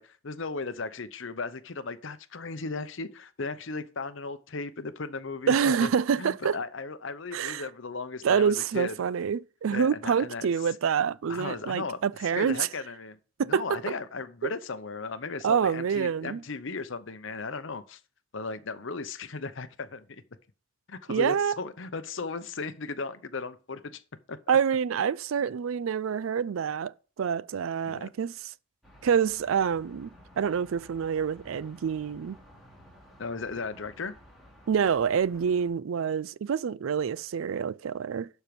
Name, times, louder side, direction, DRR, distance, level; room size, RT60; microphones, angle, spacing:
voice 1, 0.0-5.5 5.8-5.9 6.2-8.9 9.7-10.5 11.3-13.2 13.5-18.0 18.3-20.2 20.9-24.0 24.3-24.4 27.9-28.1 33.2-34.1, left 4 dB, 65° left, 0.8 m, -36 dB
voice 2, 5.5-6.6 7.3-7.7 8.2-12.7 13.4-13.8 14.4-14.5 15.4-16.4 21.1-21.6 24.5-28.5 29.0-30.1 30.4-32.4 34.7-38.3, right 7 dB, 75° right, 0.4 m, -27 dB
sound 1, 28.8-35.7, equal, ahead, 2.7 m, -54 dB
12.0 x 4.5 x 5.2 m
head